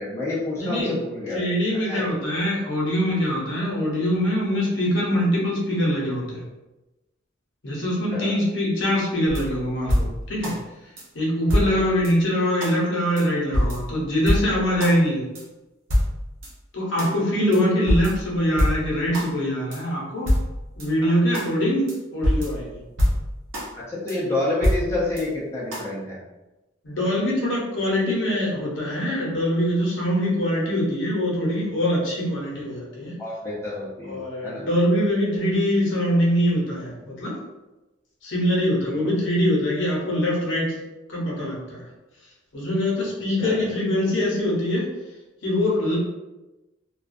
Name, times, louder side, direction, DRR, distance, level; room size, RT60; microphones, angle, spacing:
voice 1, 0.0-1.4 1.7-2.2 8.1-8.4 11.6-11.9 21.0-21.1 23.7-26.2 33.2-34.2 34.4-34.7 38.9-39.1 43.4-43.7, left 2 dB, 15° left, -7 dB, 0.5 m, -29 dB
voice 2, 0.5-1.0 1.3-6.4 7.6-10.6 11.1-15.2 16.7-20.3 20.8-21.9 22.1-22.8 26.8-33.1 34.1-37.4 38.2-40.7 41.1-41.8 42.5-44.9 45.4-46.0, equal, 70° left, -4 dB, 0.8 m, -23 dB
sound 1, 9.3-10.6 11.0-11.1 11.5-12.1 12.6-12.7 13.2-13.3 13.5-15.0 15.3-15.4 15.9-16.5 17.0-17.1 17.5-17.6 17.9-19.3 19.7-19.8 20.3-20.9 21.3-21.5 21.9-22.0 22.2-23.7 24.1-24.2 24.6-25.2 25.7-25.8, equal, 85° right, 0.7 m, -25 dB
2.3 x 2.2 x 2.5 m, 1.0 s
head